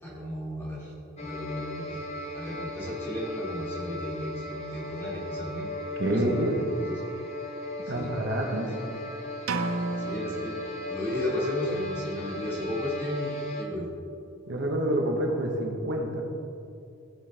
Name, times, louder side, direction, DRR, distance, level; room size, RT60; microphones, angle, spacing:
voice 1, 0.0-2.0 2.3-5.7 6.1-7.0 7.9-8.1 9.5-10.5 10.9-13.9, left 1 dB, 10° left, -6 dB, 1.7 m, -34 dB
sound 1, 1.2-13.6, left 1 dB, 30° left, 0.9 m, -37 dB
voice 2, 6.0-6.6 7.9-8.7 14.5-16.2, right 1 dB, 55° right, 1 dB, 1.1 m, -27 dB
sound 2, 9.5-11.4, right 3 dB, 90° right, 0.7 m, -33 dB
16.0 x 6.3 x 3.4 m, 2.5 s
head